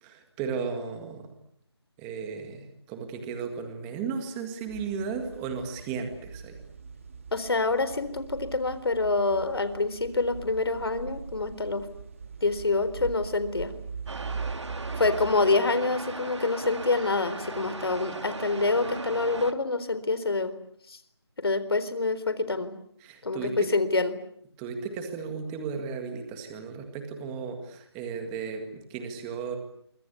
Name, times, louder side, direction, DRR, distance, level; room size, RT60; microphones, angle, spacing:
voice 1, 0.0-1.3 2.0-6.6 23.0-23.7 24.6-29.6, right 5 dB, 10° right, 6 dB, 1.9 m, -35 dB
sound 1, 4.7-15.4, right 5 dB, 30° right, 2.6 m, -41 dB
voice 2, 7.3-11.9 12.4-13.7 15.0-20.5 20.9-21.0 21.4-22.7 23.2-24.2, left 3 dB, 60° left, 13 dB, 4.1 m, -26 dB
sound 2, 14.1-19.5, right 3 dB, 90° right, 2.5 m, -38 dB
27.5 x 24.5 x 8.4 m, 0.69 s
figure-of-eight pair, 175°, 14 cm